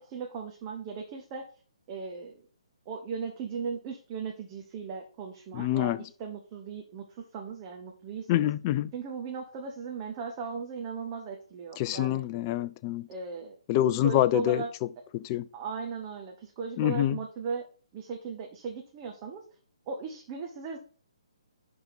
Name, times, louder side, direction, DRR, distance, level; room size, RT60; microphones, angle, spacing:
voice 1, 0.0-1.4 1.9-2.4 2.9-8.5 8.9-12.2 13.1-13.6 14.0-14.7 15.5-17.6 17.9-19.4 19.9-20.8, right 5 dB, 30° right, 1.0 m, -37 dB
voice 2, 5.5-6.0 8.3-8.9 11.8-13.1 13.7-14.6 15.1-15.5 16.8-17.2, left 14 dB, 30° left, 0.4 m, -26 dB
11.0 x 3.7 x 4.4 m
figure-of-eight pair, 140°, 3 cm